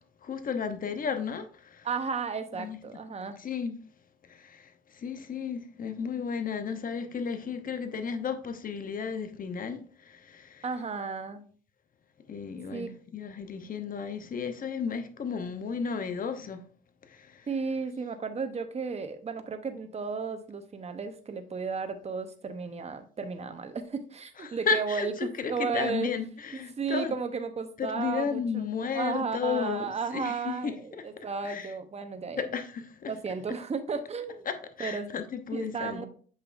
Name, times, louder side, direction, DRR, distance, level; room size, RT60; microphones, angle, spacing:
voice 1, 0.2-1.5 1.8-1.9 2.5-2.8 3.4-3.8 4.4-4.7 5.0-9.8 10.1-10.7 12.3-16.6 24.4-27.1 27.8-29.9 30.1-31.0 31.4-31.7 32.4-33.1 34.5-36.1, left 6 dB, 45° left, 0.9 m, -33 dB
voice 2, 1.8-3.4 10.6-11.4 12.7-12.9 17.5-26.1 26.5-28.7 28.9-32.4 33.1-34.5 34.8-35.1 35.5-36.1, right 5 dB, 35° right, 1.0 m, -34 dB
7.9 x 5.6 x 2.6 m
cardioid pair, 90°, 20 cm